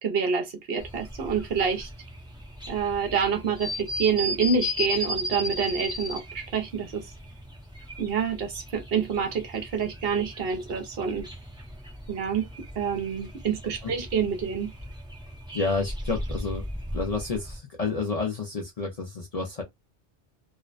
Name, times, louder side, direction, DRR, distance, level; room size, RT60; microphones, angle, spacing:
voice 1, 0.0-1.9 2.7-7.1 8.0-11.3 12.1-12.5 12.8-14.7, right 6 dB, 60° right, 0.8 m, -27 dB
sound 1, 0.8-17.6, left 1 dB, 5° right, 0.6 m, -37 dB
voice 2, 15.5-16.6 16.9-19.6, left 4 dB, 45° left, 0.5 m, -30 dB
2.5 x 2.1 x 2.3 m
omnidirectional pair, 1.2 m